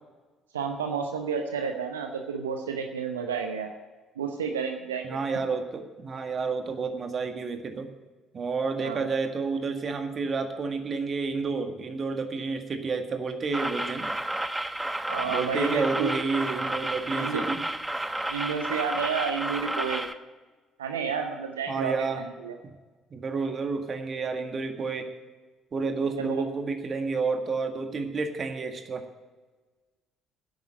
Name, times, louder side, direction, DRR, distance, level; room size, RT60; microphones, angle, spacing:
voice 1, 0.5-3.7 4.2-5.2 8.8-9.1 15.1-16.1 17.1-17.4 18.3-20.0 20.8-22.6 26.2-26.4, right 6 dB, 85° right, 4 dB, 0.8 m, -31 dB
voice 2, 5.0-7.9 8.3-14.1 15.2-17.6 21.7-22.2 23.1-25.1 25.7-29.1, right 4 dB, 40° right, 6 dB, 1.8 m, -30 dB
sound 1, 13.5-20.1, right 1 dB, 10° right, 1.0 m, -31 dB
10.5 x 9.0 x 9.4 m, 1.3 s
figure-of-eight pair, 50°, 0 cm